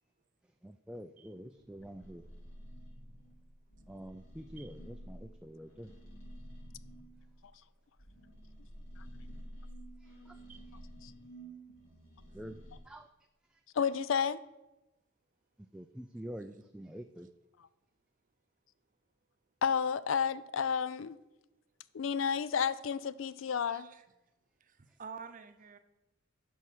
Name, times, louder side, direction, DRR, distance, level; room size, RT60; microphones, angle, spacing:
voice 1, 0.6-2.2 3.9-5.9 10.0-10.4 12.3-12.6 12.8-13.1 13.5-13.6 15.7-17.3, equal, 5° right, 5 dB, 0.3 m, -47 dB
sound 1, 1.5-7.6 8.0-12.8, equal, 85° left, 2.3 m, -51 dB
voice 2, 13.7-14.4 19.6-21.2 21.9-23.9, left 7 dB, 70° left, 16 dB, 0.4 m, -31 dB
voice 3, 23.7-24.0 24.6-25.8, right 6 dB, 40° right, 9 dB, 0.7 m, -49 dB
11.5 x 4.6 x 6.2 m, 1.0 s
head